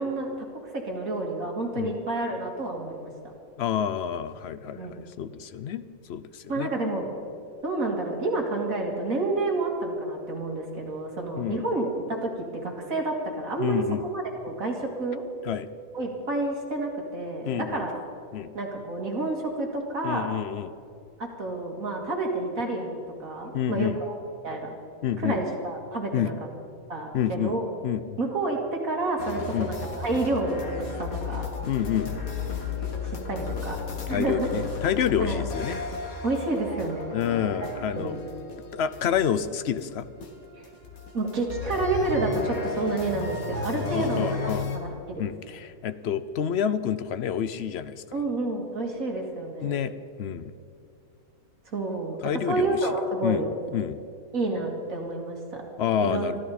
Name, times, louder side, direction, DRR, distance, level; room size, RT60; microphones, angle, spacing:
voice 1, 0.0-3.3 4.7-5.0 6.5-7.1 7.6-15.2 15.9-18.0 18.5-20.3 21.2-24.2 24.4-24.7 25.2-26.3 26.9-27.7 28.2-31.5 33.0-33.8 34.1-34.5 35.2-35.4 36.2-37.2 37.6-38.2 40.6-40.7 41.1-45.3 48.1-49.7 51.7-52.2 52.5-53.5 54.3-55.6 56.0-56.3, right 2 dB, 70° right, 1 dB, 2.7 m, -29 dB
voice 2, 3.6-5.8 6.1-6.7 11.4-11.6 13.6-14.1 15.4-15.7 17.4-17.9 18.3-18.5 20.0-20.7 23.5-24.0 25.0-25.4 26.1-26.3 27.1-27.6 27.8-28.2 29.5-29.7 31.7-32.1 34.1-35.8 37.1-38.2 38.7-40.1 43.9-44.7 45.2-48.2 49.6-49.9 50.2-50.5 52.2-52.8 53.2-53.5 53.7-54.0 55.8-56.4, left 9 dB, 55° left, 13 dB, 0.8 m, -28 dB
sound 1, 29.2-44.8, left 4 dB, 75° left, 2.1 m, -34 dB
24.0 x 13.5 x 4.2 m, 2.4 s
omnidirectional pair, 1.5 m